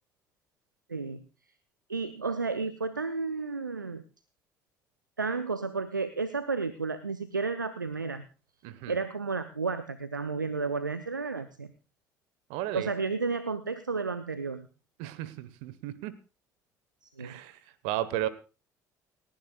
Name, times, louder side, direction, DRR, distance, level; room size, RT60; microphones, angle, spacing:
voice 1, 0.9-1.2 1.9-4.0 5.2-8.2 8.9-11.7 12.7-14.7 17.0-17.3, right 4 dB, 85° right, 13 dB, 0.6 m, -32 dB
voice 2, 8.6-8.9 12.5-12.9 15.0-16.1 17.2-17.6 17.8-18.3, right 13 dB, 60° right, 16 dB, 1.2 m, -34 dB
29.5 x 10.0 x 2.4 m, 0.33 s
figure-of-eight pair, 55°, 10 cm